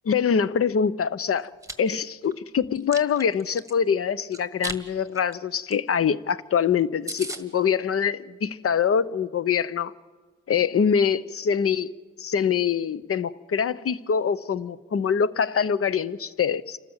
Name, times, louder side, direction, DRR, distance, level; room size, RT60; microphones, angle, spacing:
voice 1, 0.0-1.5 1.8-9.9 10.5-11.9 12.2-16.8, left 7 dB, 45° left, 0.8 m, -24 dB
Chewing mastication, 1.4-1.7 2.2-3.7 4.3-4.8 5.1-5.3 5.7-5.8 6.0-6.1 6.5-6.6 6.8-6.9 7.1-7.4, right 2 dB, 10° right, 1.5 m, -35 dB
28.5 x 13.0 x 8.0 m
cardioid pair, 100°, 32 cm